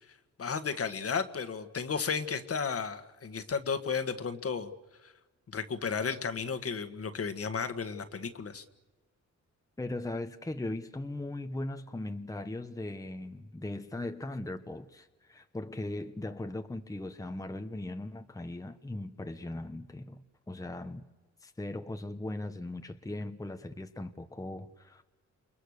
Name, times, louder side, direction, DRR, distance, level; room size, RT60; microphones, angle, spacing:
voice 1, 0.4-4.7 5.0-5.1 5.5-8.6, left 5 dB, 50° left, 1.8 m, -33 dB
voice 2, 9.8-21.0 21.4-25.0, left 2 dB, 10° left, 1.1 m, -39 dB
28.5 x 23.5 x 6.7 m
cardioid pair, 110°, 30 cm